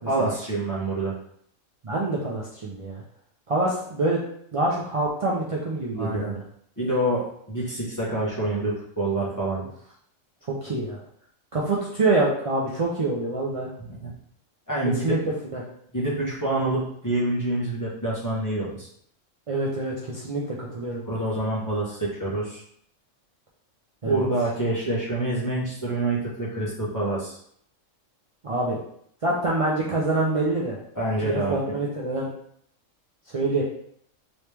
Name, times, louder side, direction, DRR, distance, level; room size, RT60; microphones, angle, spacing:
voice 1, 0.1-1.1 6.0-6.3 6.8-9.6 13.9-14.1 14.7-15.1 15.9-18.9 21.1-22.6 24.0-27.4 30.9-31.5, right 2 dB, 15° left, -7 dB, 0.9 m, -26 dB
voice 2, 1.8-3.0 3.5-4.2 4.5-6.4 10.5-11.0 11.5-13.7 14.9-15.2 15.5-15.7 19.5-21.0 24.0-24.2 28.4-28.8 29.2-30.8 31.2-32.3 33.3-33.6, right 2 dB, 60° right, -5 dB, 0.3 m, -26 dB
3.1 x 3.0 x 3.3 m, 0.67 s
omnidirectional pair, 1.4 m